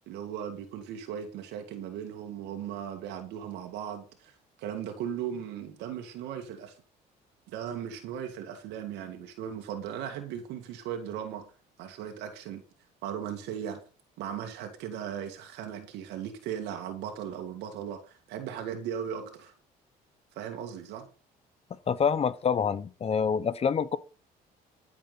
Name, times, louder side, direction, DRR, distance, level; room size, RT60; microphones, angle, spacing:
voice 1, 0.1-6.7 7.5-11.5 11.8-12.6 13.0-13.8 14.2-19.5 20.4-21.1, right 9 dB, 90° right, 2.3 m, -37 dB
voice 2, 21.9-24.0, left 6 dB, 35° left, 1.0 m, -26 dB
13.0 x 7.5 x 5.7 m
cardioid pair, 110°, 17 cm